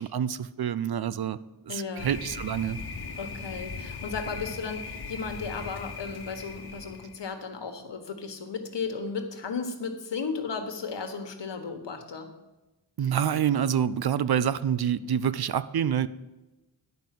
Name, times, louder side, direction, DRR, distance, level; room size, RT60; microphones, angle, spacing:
voice 1, 0.0-1.4 1.7-2.8 13.0-16.1, right 9 dB, 60° right, 16 dB, 0.5 m, -27 dB
voice 2, 1.7-2.1 3.2-12.3, left 5 dB, 80° left, 6 dB, 1.3 m, -35 dB
Thunder, 2.0-7.3, left 4 dB, 65° left, 1.3 m, -39 dB
10.5 x 5.3 x 7.6 m, 1.1 s
wide cardioid pair, 70°, 42 cm